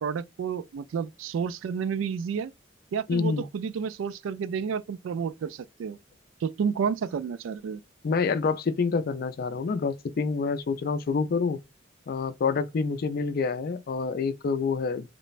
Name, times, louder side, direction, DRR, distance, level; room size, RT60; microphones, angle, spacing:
voice 1, 0.0-2.5 2.9-6.0 6.4-7.8, right 6 dB, 75° right, 0.3 m, -30 dB
voice 2, 3.1-3.4 8.0-11.6 12.1-15.1, left 4 dB, 50° left, 0.3 m, -27 dB
3.1 x 2.1 x 2.3 m
head